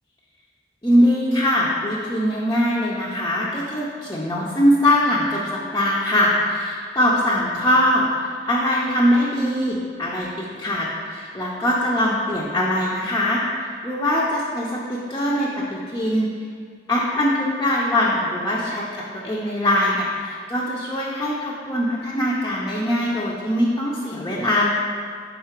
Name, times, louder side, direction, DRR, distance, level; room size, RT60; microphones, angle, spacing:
voice 1, 0.8-13.4 13.8-14.7 15.1-16.3 16.9-18.8 19.1-24.7, left 1 dB, 20° left, -6 dB, 0.5 m, -22 dB
5.6 x 4.2 x 4.4 m, 2.1 s
head